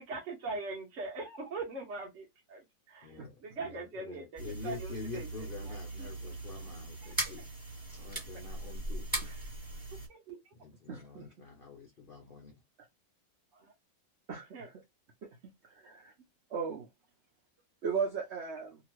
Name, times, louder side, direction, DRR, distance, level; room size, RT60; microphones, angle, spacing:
voice 1, 0.0-2.6 2.9-3.1 3.4-5.3 6.0-6.1 7.0-7.3 9.3-9.4 10.1-10.4 13.5-13.7 14.5-14.7, right 3 dB, 55° right, 0.8 m, -41 dB
voice 2, 3.0-7.5 7.9-9.1 10.5-12.5, left 5 dB, 75° left, 0.4 m, -47 dB
sound 1, 4.4-10.1, right 2 dB, 15° right, 1.2 m, -39 dB
voice 3, 10.9-11.3 14.3-14.7 15.8-16.1 16.5-16.9 17.8-18.8, right 6 dB, 85° right, 0.5 m, -36 dB
2.9 x 2.4 x 3.0 m
omnidirectional pair, 2.0 m